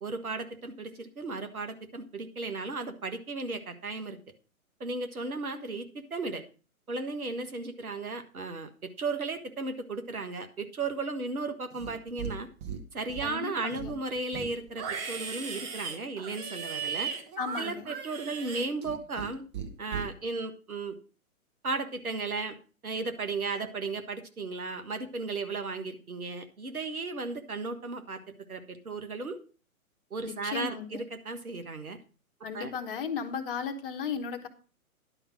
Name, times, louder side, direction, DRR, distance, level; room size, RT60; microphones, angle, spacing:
voice 1, 0.0-4.2 4.8-6.4 6.9-12.5 12.9-17.1 17.6-19.4 19.8-20.9 21.6-22.6 22.8-28.2 28.5-29.4 30.1-32.0 32.5-32.7, right 3 dB, 75° right, 7 dB, 1.6 m, -35 dB
Livestock farm animals working animals, 11.7-12.3 12.6-13.3 13.7-19.3 19.5-20.1, right 7 dB, 20° right, 0.9 m, -37 dB
voice 2, 13.2-13.9 17.4-17.9 30.2-31.1 32.4-34.5, left 6 dB, 40° left, 8 dB, 1.2 m, -35 dB
11.0 x 5.1 x 6.2 m, 0.36 s
figure-of-eight pair, 130°, 43 cm